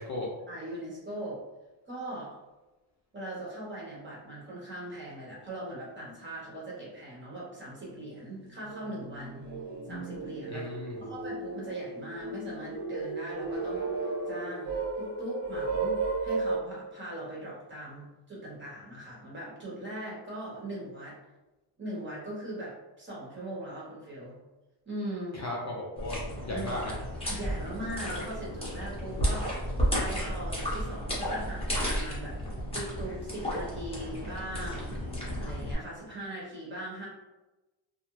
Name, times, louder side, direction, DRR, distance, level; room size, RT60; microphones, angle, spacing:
voice 1, 0.5-1.4 1.9-2.4 3.1-9.4 9.9-10.7 11.0-21.2 21.8-24.4 24.8-25.4 26.5-26.7 27.3-29.5 30.0-32.4 32.7-34.9 35.4-37.1, right 1 dB, 25° right, -6 dB, 1.1 m, -40 dB
sound 1, 7.9-8.0 8.5-16.6, right 3 dB, 55° right, 1.4 m, -34 dB
voice 2, 10.5-11.1 25.3-27.0, left 2 dB, 40° left, -3 dB, 0.4 m, -36 dB
sound 2, 26.0-35.7, equal, 10° left, 0.9 m, -33 dB
2.4 x 2.2 x 3.0 m, 1.1 s
cardioid pair, 115°, 47 cm